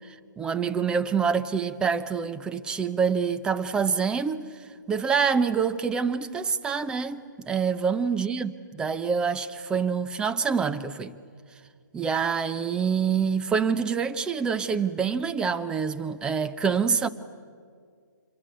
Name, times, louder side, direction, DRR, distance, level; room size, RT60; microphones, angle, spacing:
voice 1, 0.1-4.4 4.9-11.1 11.9-17.1, right 6 dB, 10° right, 0.7 m, -26 dB
26.5 x 23.0 x 9.1 m
hypercardioid pair, 150°, 10 cm